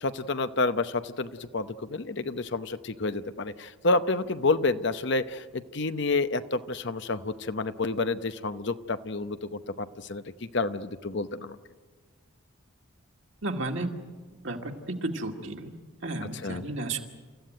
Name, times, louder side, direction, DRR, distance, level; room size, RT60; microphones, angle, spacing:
voice 1, 0.0-10.2 10.5-11.6 16.4-16.6, left 3 dB, 55° left, 11 dB, 0.8 m, -29 dB
voice 2, 13.4-13.9 14.3-15.7 16.0-17.0, right 2 dB, 55° right, 3 dB, 2.1 m, -33 dB
28.5 x 15.0 x 9.2 m, 1.4 s
head